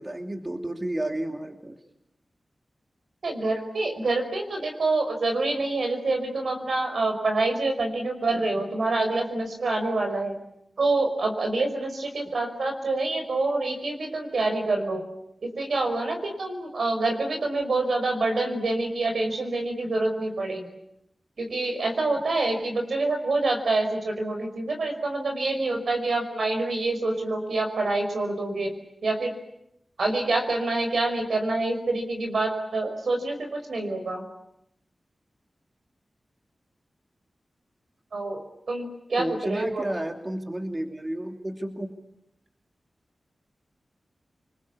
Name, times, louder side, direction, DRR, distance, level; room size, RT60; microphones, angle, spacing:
voice 1, 0.0-1.8 39.2-42.0, right 1 dB, 25° right, 5 dB, 2.8 m, -32 dB
voice 2, 3.2-10.4 10.8-15.0 15.4-20.7 21.4-28.7 29.0-29.3 30.0-34.2 38.1-38.4 38.7-39.8, right 2 dB, 80° right, 4 dB, 5.5 m, -26 dB
28.5 x 21.5 x 8.5 m, 0.78 s
cardioid pair, 55°, 0 cm